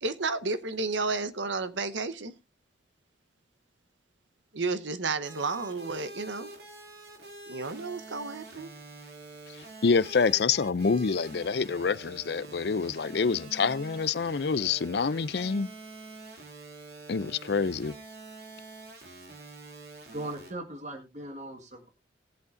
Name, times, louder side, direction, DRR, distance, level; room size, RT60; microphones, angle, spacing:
voice 1, 0.0-2.3 4.5-6.5 7.5-8.7, right 3 dB, 80° right, 1.1 m, -32 dB
sound 1, 5.2-20.5, right 2 dB, 55° right, 2.8 m, -46 dB
voice 2, 9.8-15.7 17.1-18.0, left 5 dB, 60° left, 0.5 m, -27 dB
voice 3, 20.1-21.9, right 1 dB, 40° right, 1.7 m, -39 dB
19.0 x 8.2 x 2.6 m
head